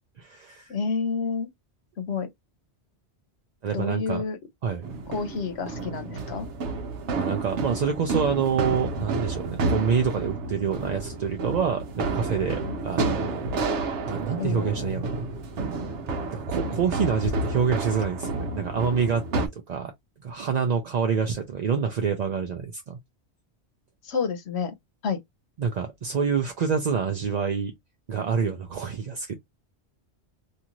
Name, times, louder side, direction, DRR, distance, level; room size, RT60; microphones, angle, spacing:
voice 1, 0.2-0.8 2.1-2.2 3.6-4.2 4.6-4.9 7.1-13.5 14.1-15.3 16.3-19.9 20.2-23.0 25.6-27.7 28.1-29.4, right 6 dB, 50° right, 0.5 m, -27 dB
voice 2, 0.7-1.5 2.0-2.3 3.7-4.4 5.1-6.5 14.4-14.9 24.0-24.7 25.0-25.2, left 5 dB, 75° left, 0.9 m, -29 dB
sound 1, 4.8-19.5, right 3 dB, 90° right, 1.0 m, -30 dB
2.7 x 2.5 x 2.9 m
omnidirectional pair, 1.1 m